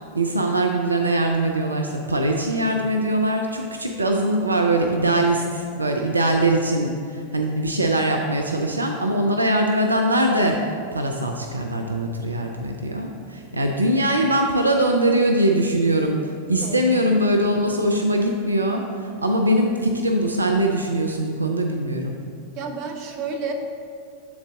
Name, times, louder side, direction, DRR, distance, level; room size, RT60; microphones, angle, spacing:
voice 1, 0.1-22.2, right 1 dB, 80° right, 2 dB, 0.4 m, -22 dB
voice 2, 22.6-23.5, right 5 dB, 40° right, 3 dB, 0.7 m, -31 dB
7.2 x 3.9 x 3.7 m, 2.3 s
figure-of-eight pair, 90°, 0 cm